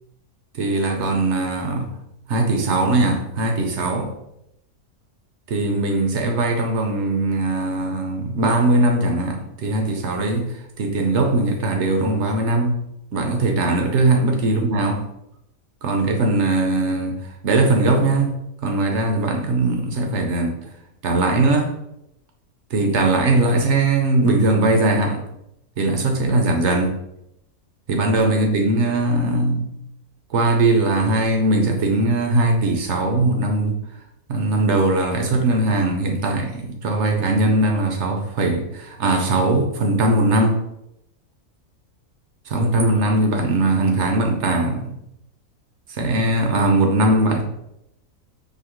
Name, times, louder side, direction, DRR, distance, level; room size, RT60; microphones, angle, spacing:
voice 1, 0.6-1.9 2.3-4.1 5.5-10.5 10.8-12.8 13.1-15.0 15.8-17.2 17.4-18.4 18.6-20.6 21.0-21.7 22.7-25.2 25.8-26.9 27.9-29.7 30.3-33.8 34.3-40.6 42.5-45.0 46.0-47.4, right 2 dB, 60° right, 3 dB, 0.9 m, -20 dB
4.9 x 2.8 x 3.0 m, 0.81 s
omnidirectional pair, 1.6 m